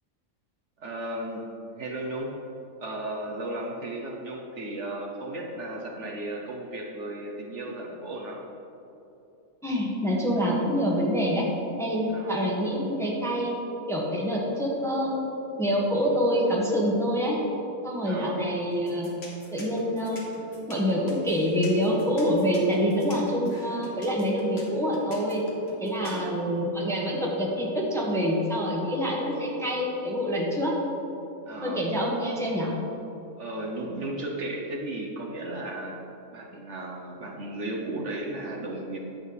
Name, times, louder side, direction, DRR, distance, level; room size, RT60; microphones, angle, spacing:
voice 1, 0.8-2.3 2.8-8.4 12.1-12.4 18.0-18.4 26.0-26.4 31.5-31.8 33.4-36.0 36.3-39.0, right 1 dB, 60° right, -1 dB, 1.2 m, -35 dB
voice 2, 9.6-11.5 11.8-13.5 13.9-15.2 15.6-17.4 17.8-19.1 19.5-20.2 20.7-25.4 25.8-30.7 31.6-32.7, equal, ahead, -3 dB, 1.3 m, -26 dB
sound 1, 18.7-26.2, left 2 dB, 50° left, 1.8 m, -46 dB
10.5 x 7.6 x 4.0 m, 2.9 s
omnidirectional pair, 1.5 m